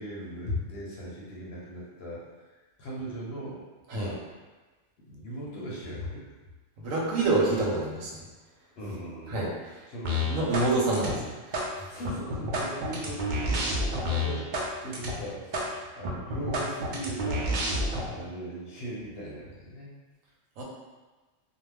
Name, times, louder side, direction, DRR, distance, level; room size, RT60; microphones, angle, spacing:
voice 1, 0.0-2.2 2.8-3.6 3.9-4.2 5.0-6.3 8.8-9.4 9.9-10.2 10.9-11.3 11.9-14.5 14.8-17.5 18.0-19.9, equal, 55° left, -5 dB, 0.9 m, -38 dB
voice 2, 6.8-8.2 9.3-9.8 10.3-11.2 11.5-11.9 20.6-20.7, right 2 dB, 85° right, -3 dB, 1.1 m, -27 dB
sound 1, 10.0-10.7 10.9-11.7 12.0-14.7 14.9-15.1 15.5-15.7 16.0-18.0, equal, 70° right, 0.4 m, -29 dB
2.4 x 2.2 x 3.3 m, 1.2 s
omnidirectional pair, 1.4 m